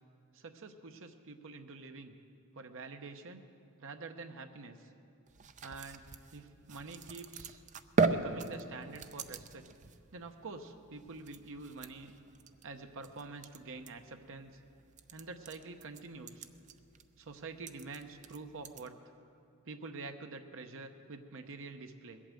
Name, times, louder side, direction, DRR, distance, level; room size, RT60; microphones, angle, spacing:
voice 1, 0.3-2.1 2.5-3.4 3.8-4.9 5.6-6.0 6.3-7.6 8.1-9.6 10.1-12.1 12.6-14.6 15.1-16.5 17.2-19.0 19.6-22.2, right 3 dB, 65° right, 6 dB, 0.9 m, -47 dB
sound 1, 5.3-18.9, right 4 dB, 35° right, 0.5 m, -40 dB
20.5 x 8.5 x 7.7 m, 2.5 s
head